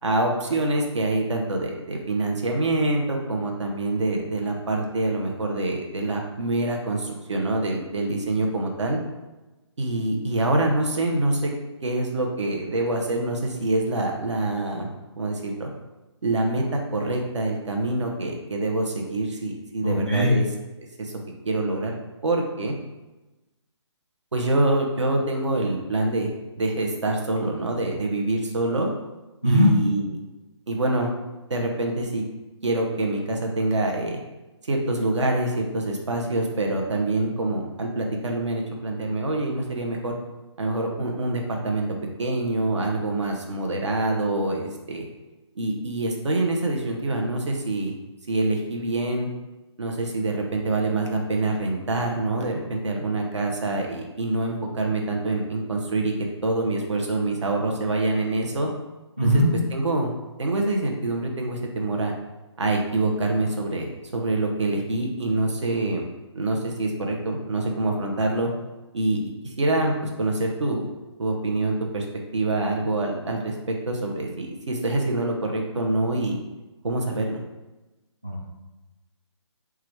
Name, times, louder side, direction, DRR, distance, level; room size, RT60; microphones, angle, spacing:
voice 1, 0.0-9.0 9.8-11.5 11.8-14.9 15.2-15.7 16.2-20.4 20.8-21.1 21.4-21.9 22.2-22.7 24.3-26.3 26.6-28.9 29.4-30.1 30.7-31.1 31.5-32.2 32.6-34.2 34.7-40.1 40.6-41.9 42.2-45.0 45.6-47.9 48.3-49.3 49.8-56.1 56.4-58.7 59.7-60.1 60.4-62.1 62.6-66.0 66.3-68.5 68.9-70.9 71.2-72.0 72.3-76.4 76.8-77.4, right 2 dB, 75° right, 1 dB, 1.0 m, -25 dB
voice 2, 19.8-20.4 29.4-29.7 59.2-59.5 78.2-78.4, equal, 15° right, -2 dB, 0.4 m, -19 dB
4.7 x 2.5 x 4.5 m, 1.1 s
hypercardioid pair, 180°, 15 cm